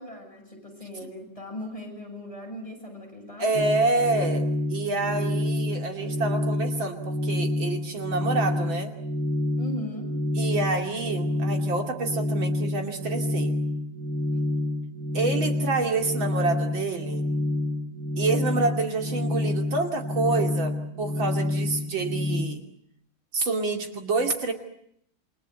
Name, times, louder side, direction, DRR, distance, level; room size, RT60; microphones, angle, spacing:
voice 1, 0.0-3.6 9.6-10.1 18.5-18.7, left 1 dB, 15° left, 1 dB, 8.2 m, -38 dB
voice 2, 3.4-4.4 4.7-8.9 10.3-13.6 15.1-17.2 18.2-22.6 23.3-24.5, right 3 dB, 70° right, 4 dB, 3.4 m, -27 dB
sound 1, 3.5-22.4, left 1 dB, 50° right, 4.5 m, -28 dB
29.0 x 24.5 x 8.2 m, 0.73 s
omnidirectional pair, 2.2 m